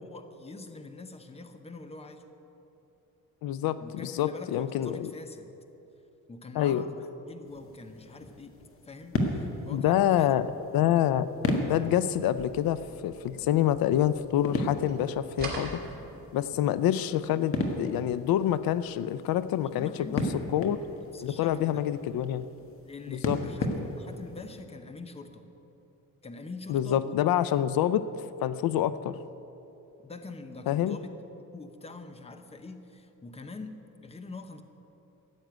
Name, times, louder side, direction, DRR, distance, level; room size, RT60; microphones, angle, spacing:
voice 1, 0.0-2.2 3.8-5.5 6.3-8.6 8.8-10.3 19.6-20.3 21.1-21.8 22.8-25.5 26.2-27.1 30.0-31.1 31.5-34.6, left 3 dB, 15° left, 8 dB, 0.8 m, -44 dB
voice 2, 3.4-5.1 6.6-6.8 9.7-10.5 10.7-11.3 11.7-15.8 16.3-20.2 20.5-20.8 21.2-22.5 23.1-23.4 26.7-28.0 28.4-29.2 30.7-31.0, left 11 dB, 85° left, 14 dB, 0.6 m, -27 dB
sound 1, 7.4-24.6, left 2 dB, 40° left, 1.5 m, -36 dB
sound 2, 12.2-14.5 14.8-16.6, right 2 dB, 25° right, 2.8 m, -42 dB
14.5 x 7.5 x 9.3 m, 2.9 s
cardioid pair, 150°, 34 cm